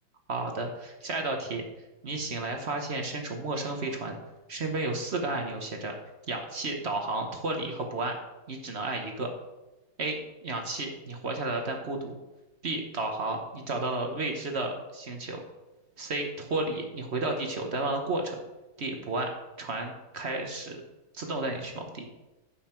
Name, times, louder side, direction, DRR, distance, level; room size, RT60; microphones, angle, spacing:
voice 1, 0.3-1.6 2.0-4.1 4.5-5.9 6.3-8.2 8.5-9.3 10.0-12.2 12.6-15.4 16.0-18.4 18.8-19.3 19.6-20.8 21.1-22.0, right 2 dB, 45° right, 3 dB, 0.9 m, -32 dB
13.0 x 5.7 x 4.5 m, 1.0 s
omnidirectional pair, 2.4 m